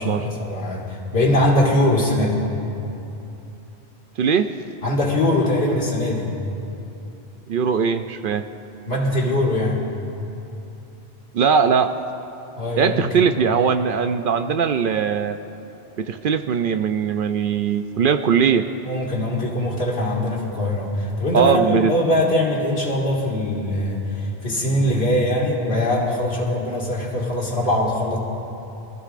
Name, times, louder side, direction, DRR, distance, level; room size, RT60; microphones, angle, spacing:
voice 1, 0.0-2.4 4.8-6.4 8.9-9.9 12.6-13.2 18.8-28.2, left 1 dB, 75° left, -4 dB, 2.3 m, -22 dB
voice 2, 4.2-4.5 7.5-8.4 11.3-11.9 12.8-15.4 16.0-18.7 21.3-21.9, right 6 dB, 65° right, 9 dB, 0.7 m, -20 dB
25.0 x 14.5 x 2.5 m, 2.9 s
omnidirectional pair, 1.1 m